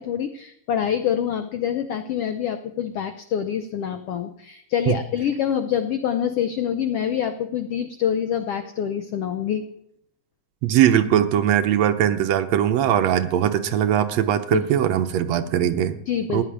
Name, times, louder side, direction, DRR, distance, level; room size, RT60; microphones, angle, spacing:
voice 1, 0.0-9.6 14.5-14.6 16.1-16.4, left 9 dB, 90° left, 9 dB, 1.3 m, -26 dB
voice 2, 10.6-16.0 16.3-16.4, right 10 dB, 70° right, 9 dB, 1.8 m, -20 dB
15.5 x 6.7 x 10.0 m, 0.75 s
omnidirectional pair, 3.6 m